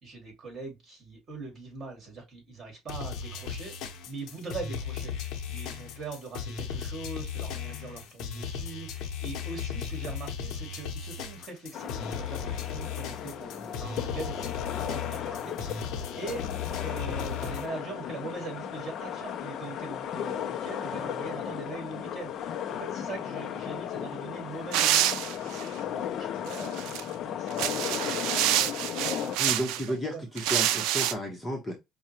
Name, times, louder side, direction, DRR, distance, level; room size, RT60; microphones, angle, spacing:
voice 1, 0.0-3.8 4.0-15.9 16.2-16.5 16.8-29.7 30.0-30.2, right 3 dB, 35° right, 2.4 m, -42 dB
sound 1, 2.9-17.7, left 6 dB, 75° left, 0.8 m, -36 dB
sound 2, 11.7-29.4, left 9 dB, 50° left, 0.5 m, -35 dB
sound 3, 24.7-25.7 26.5-27.0 27.5-29.9 30.4-31.1, right 12 dB, 85° right, 0.4 m, -27 dB
voice 2, 29.4-31.8, equal, 5° left, 1.0 m, -32 dB
5.4 x 2.2 x 2.9 m
cardioid pair, 145°, 0 cm